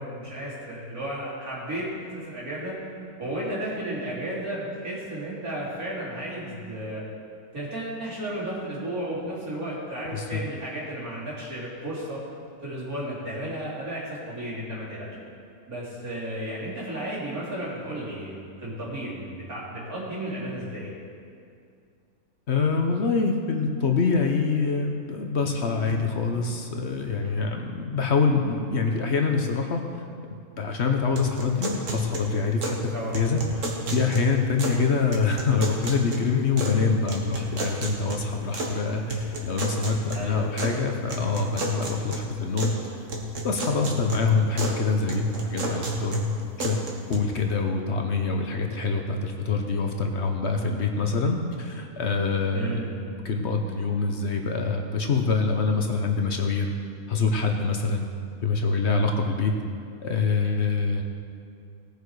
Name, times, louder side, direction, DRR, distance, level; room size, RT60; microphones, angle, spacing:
voice 1, 0.0-1.9 2.1-2.7 3.2-7.0 7.5-12.2 12.6-15.1 15.7-18.3 18.6-20.9 32.9-33.2 40.1-40.8 52.5-52.9, right 1 dB, 80° right, -7 dB, 3.8 m, -33 dB
voice 2, 22.5-29.8 30.6-33.6 33.9-42.7 43.4-46.2 46.6-46.8 47.1-52.8 53.2-56.7 57.1-58.1 58.4-59.5 60.0-61.0, left 4 dB, 55° left, 3 dB, 1.1 m, -25 dB
sound 1, 31.2-32.8 33.1-34.8 35.1-36.8 37.1-38.7 39.1-40.7 41.1-42.8 43.1-44.8 45.1-47.2, right 1 dB, 60° right, 1.8 m, -31 dB
18.0 x 7.0 x 4.8 m, 2.3 s
omnidirectional pair, 1.5 m